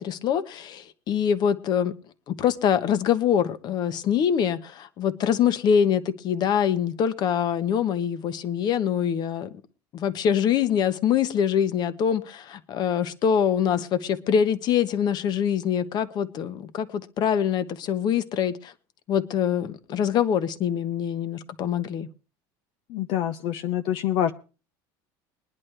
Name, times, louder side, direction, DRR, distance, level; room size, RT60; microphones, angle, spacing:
voice 1, 0.0-1.9 2.3-9.5 9.9-18.7 19.1-22.1, left 8 dB, 45° left, 1.1 m, -24 dB
voice 2, 22.9-24.3, left 11 dB, 65° left, 0.8 m, -26 dB
22.0 x 10.5 x 3.4 m
cardioid pair, 135°, 10 cm